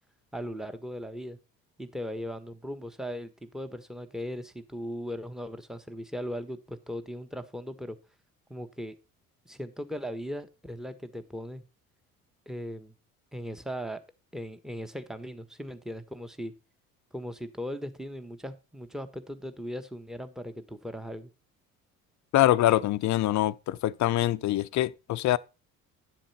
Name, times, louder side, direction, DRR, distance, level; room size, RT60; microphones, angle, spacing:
voice 1, 0.3-1.4 1.8-8.0 8.5-9.0 9.4-11.6 12.5-12.9 13.3-14.0 14.3-16.5 17.1-21.3, equal, ahead, 1.3 m, -38 dB
voice 2, 22.3-25.4, left 14 dB, 45° left, 0.6 m, -24 dB
10.5 x 7.4 x 4.3 m
hypercardioid pair, 55°, 41 cm